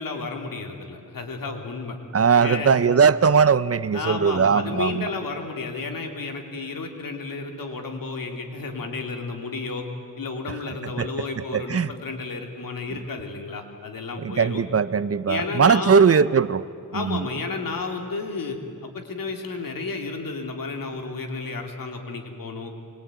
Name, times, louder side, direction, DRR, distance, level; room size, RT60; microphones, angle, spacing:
voice 1, 0.0-2.0 2.3-2.7 3.9-9.9 10.2-14.6 15.3-16.1 16.9-22.7, left 4 dB, 85° left, 3 dB, 3.1 m, -32 dB
voice 2, 2.1-5.1 11.0-11.1 11.5-11.9 14.2-16.6 16.9-17.3, right 6 dB, 45° right, 16 dB, 0.7 m, -19 dB
25.0 x 22.0 x 9.2 m, 2.4 s
wide cardioid pair, 95°, 33 cm